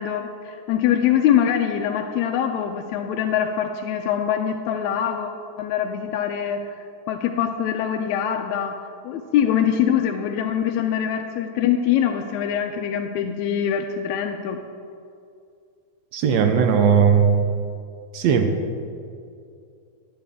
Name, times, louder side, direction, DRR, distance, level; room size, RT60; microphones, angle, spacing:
voice 1, 0.0-5.3 5.6-8.8 9.0-14.6, left 9 dB, 85° left, 3 dB, 1.9 m, -23 dB
voice 2, 16.1-17.3 18.1-18.5, right 7 dB, 70° right, 5 dB, 1.9 m, -17 dB
15.0 x 10.5 x 3.6 m, 2.5 s
omnidirectional pair, 3.3 m